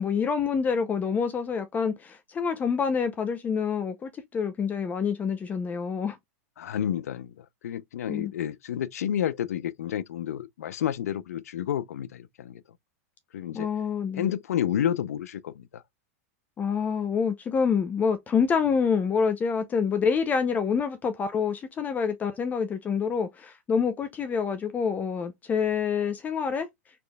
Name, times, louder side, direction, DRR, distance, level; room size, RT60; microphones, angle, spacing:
voice 1, 0.0-6.2 8.1-8.3 13.5-14.3 16.6-26.7, left 6 dB, 20° left, 0.6 m, -27 dB
voice 2, 6.6-12.6 13.3-13.7 14.1-15.8, left 10 dB, 85° left, 0.5 m, -30 dB
4.2 x 3.3 x 2.2 m
hypercardioid pair, 125°, 8 cm